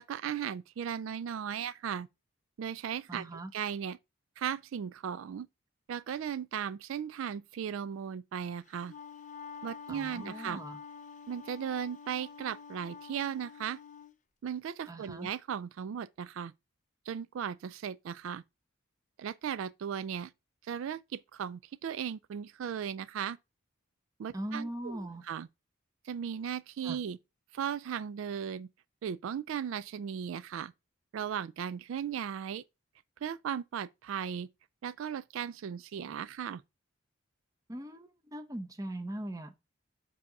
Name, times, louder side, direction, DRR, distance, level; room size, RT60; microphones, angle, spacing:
voice 1, 0.0-2.1 2.6-4.0 4.4-5.5 5.9-8.9 9.6-10.6 11.3-13.8 14.4-16.5 17.1-18.4 19.2-20.3 20.6-23.4 24.2-25.5 26.0-27.2 27.5-28.7 29.0-30.7 31.1-32.6 33.2-34.5 34.8-36.6, right 8 dB, 75° right, 0.3 m, -37 dB
voice 2, 3.1-3.5 9.9-10.8 14.9-15.3 24.3-25.2 26.8-27.0 37.7-39.6, right 1 dB, 15° right, 0.7 m, -40 dB
Wind instrument woodwind instrument, 8.7-14.1, left 6 dB, 35° left, 0.4 m, -48 dB
7.4 x 2.8 x 5.7 m
head